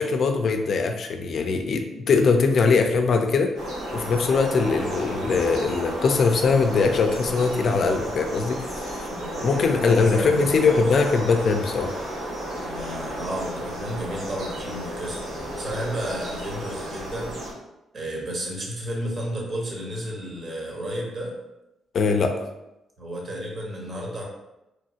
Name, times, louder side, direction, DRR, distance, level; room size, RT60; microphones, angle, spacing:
voice 1, 0.0-3.5 3.9-9.1 9.4-11.9 21.9-22.3, left 4 dB, 55° left, 5 dB, 0.4 m, -21 dB
sound 1, 3.6-17.5, equal, 90° right, 1.1 m, -33 dB
voice 2, 9.1-10.7 12.6-17.4 17.9-21.3 23.0-24.2, equal, 45° right, -2 dB, 0.9 m, -32 dB
3.0 x 2.3 x 2.8 m, 0.92 s
cardioid pair, 90°, 0 cm